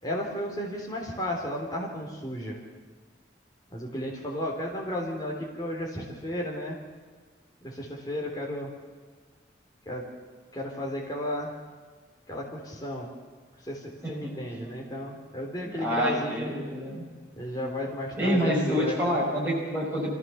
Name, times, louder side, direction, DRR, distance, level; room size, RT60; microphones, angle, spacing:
voice 1, 0.0-2.6 3.7-6.8 7.6-8.7 9.9-10.0 10.5-11.5 12.3-13.1 13.6-16.5 17.4-19.1, left 1 dB, 20° left, -2 dB, 3.7 m, -33 dB
voice 2, 15.8-17.1 18.2-20.2, equal, 10° right, -6 dB, 5.6 m, -27 dB
25.0 x 16.0 x 7.1 m, 1.5 s
head